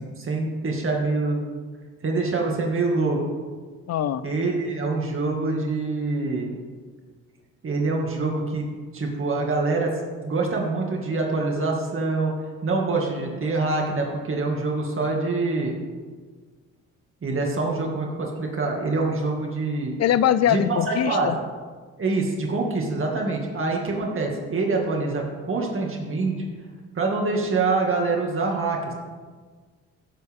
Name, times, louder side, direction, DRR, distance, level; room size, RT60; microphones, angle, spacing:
voice 1, 0.0-1.5 2.0-3.2 4.2-6.6 7.6-8.7 8.9-9.9 10.2-12.3 12.6-15.7 17.2-20.0 20.5-21.3 22.0-26.4 26.9-28.9, right 3 dB, 45° right, 0 dB, 2.3 m, -25 dB
voice 2, 3.9-4.2 20.0-21.4, left 10 dB, 60° left, 16 dB, 0.6 m, -22 dB
15.5 x 7.6 x 3.7 m, 1.4 s
cardioid pair, 90°, 30 cm